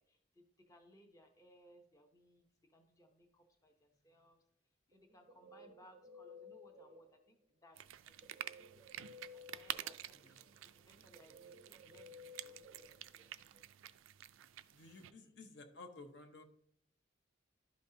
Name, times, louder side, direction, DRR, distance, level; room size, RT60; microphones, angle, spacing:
voice 1, 0.0-4.4 4.9-8.3 9.3-13.3 14.8-15.5, equal, 15° left, 3 dB, 0.7 m, -65 dB
Guitar, 4.9-7.4 8.2-13.6, left 3 dB, 30° right, 0.5 m, -57 dB
sound 1, 7.8-15.1, right 12 dB, 90° right, 0.3 m, -49 dB
voice 2, 10.0-10.4 14.7-16.4, left 3 dB, 60° left, 6 dB, 0.8 m, -55 dB
12.0 x 5.3 x 2.7 m, 0.69 s
head